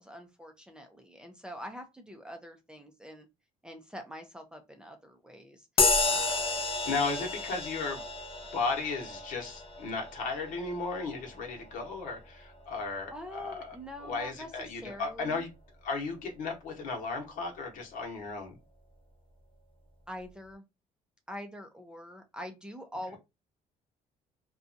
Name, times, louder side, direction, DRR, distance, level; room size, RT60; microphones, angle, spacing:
voice 1, 0.0-3.3 3.6-5.7 6.0-6.9 13.1-15.5 20.1-20.6 21.3-23.2, equal, 5° right, 0.5 m, -45 dB
sound 1, 5.8-13.7, left 3 dB, 40° left, 0.6 m, -32 dB
voice 2, 6.8-8.0 8.5-15.5 15.8-18.6, left 4 dB, 70° left, 1.0 m, -35 dB
2.6 x 2.3 x 2.6 m
cardioid pair, 115°, 14 cm